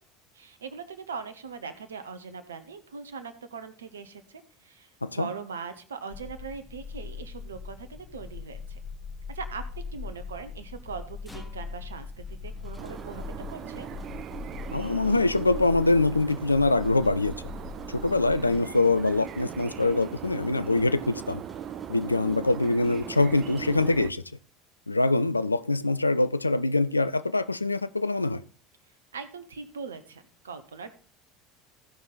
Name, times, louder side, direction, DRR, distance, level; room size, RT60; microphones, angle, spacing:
voice 1, 0.3-8.8 9.3-13.2 13.5-13.9 29.1-30.9, right 5 dB, 75° right, 0.9 m, -40 dB
sound 1, 6.1-18.6, left 5 dB, 25° left, 0.6 m, -41 dB
sound 2, 11.3-24.4, left 1 dB, 5° left, 1.5 m, -53 dB
sound 3, 12.8-24.1, right 9 dB, 45° right, 0.5 m, -39 dB
voice 2, 14.7-17.3 17.9-21.4 21.9-24.2 24.9-28.4, left 2 dB, 90° left, 0.4 m, -24 dB
15.0 x 5.5 x 3.9 m
figure-of-eight pair, 70°, 0 cm